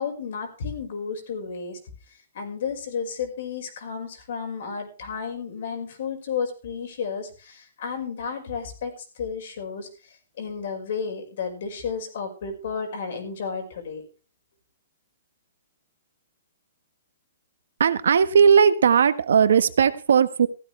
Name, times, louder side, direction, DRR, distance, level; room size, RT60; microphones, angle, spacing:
voice 1, 0.0-1.8 2.1-14.0, left 6 dB, 50° left, 4 dB, 5.3 m, -32 dB
voice 2, 17.8-20.5, right 7 dB, 80° right, 12 dB, 1.4 m, -18 dB
15.5 x 14.0 x 3.4 m, 0.35 s
hypercardioid pair, 170°, 0 cm